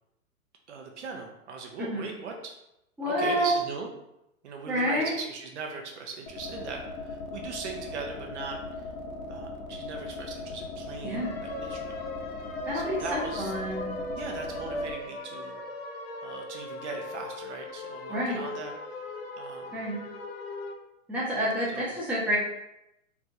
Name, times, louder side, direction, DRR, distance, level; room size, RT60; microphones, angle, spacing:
voice 1, 0.7-2.5 3.1-3.9 4.4-8.9 9.3-12.0 12.7-13.5 14.1-15.6 16.2-19.0 19.4-20.0 21.7-21.9, right 4 dB, 55° right, 2 dB, 0.7 m, -39 dB
voice 2, 3.0-3.5 4.7-5.1 11.0-11.3 12.7-13.9 18.1-18.4 19.7-20.0 21.1-22.4, equal, 5° right, -7 dB, 0.8 m, -28 dB
sound 1, 6.3-14.9, left 3 dB, 75° left, 0.8 m, -39 dB
sound 2, 11.1-20.7, left 2 dB, 45° left, 0.6 m, -39 dB
3.4 x 3.2 x 2.7 m, 0.86 s
figure-of-eight pair, 115°, 42 cm